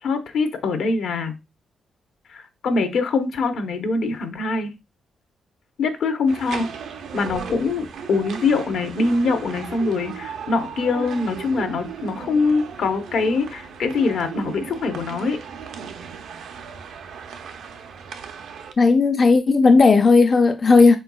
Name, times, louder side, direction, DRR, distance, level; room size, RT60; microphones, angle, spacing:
voice 1, 0.0-1.4 2.3-4.7 5.8-6.7 7.1-15.4, left 3 dB, 80° left, 0.8 m, -23 dB
sound 1, 6.3-18.7, right 6 dB, 85° right, 0.5 m, -36 dB
voice 2, 18.8-21.0, left 4 dB, 40° left, 0.3 m, -14 dB
4.4 x 3.9 x 2.3 m
cardioid pair, 95°, 0 cm